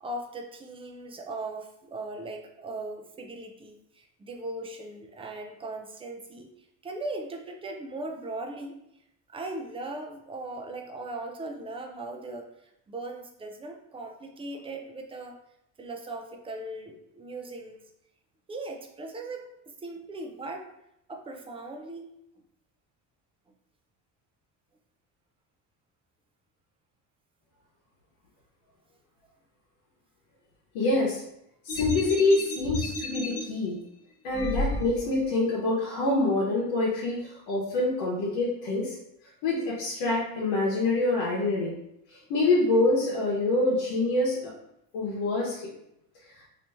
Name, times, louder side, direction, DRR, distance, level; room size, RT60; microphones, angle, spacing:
voice 1, 0.0-8.8 9.3-15.4 15.8-17.9 18.5-20.7 21.1-22.4, right 2 dB, 15° right, 3 dB, 0.3 m, -39 dB
voice 2, 30.7-31.2 31.6-33.8 34.2-39.0 39.4-41.7 42.3-44.5 44.9-45.7, left 2 dB, 90° left, -5 dB, 1.0 m, -26 dB
sound 1, 31.7-33.4 34.3-35.2, left 2 dB, 35° left, 0.9 m, -32 dB
3.0 x 2.7 x 3.3 m, 0.79 s
cardioid pair, 115°, 43 cm